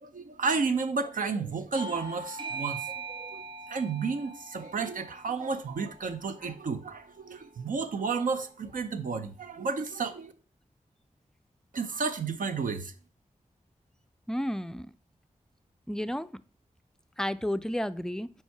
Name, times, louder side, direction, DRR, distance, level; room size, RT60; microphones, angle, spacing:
voice 1, 0.0-3.4 3.7-10.3 11.7-12.9, right 4 dB, 80° right, 0.6 m, -32 dB
Bell / Doorbell, 1.7-6.8, right 4 dB, 35° right, 1.2 m, -41 dB
voice 2, 14.3-14.9 15.9-16.3 17.2-18.3, equal, 5° left, 0.4 m, -31 dB
5.5 x 4.6 x 4.6 m
cardioid pair, 55°, 14 cm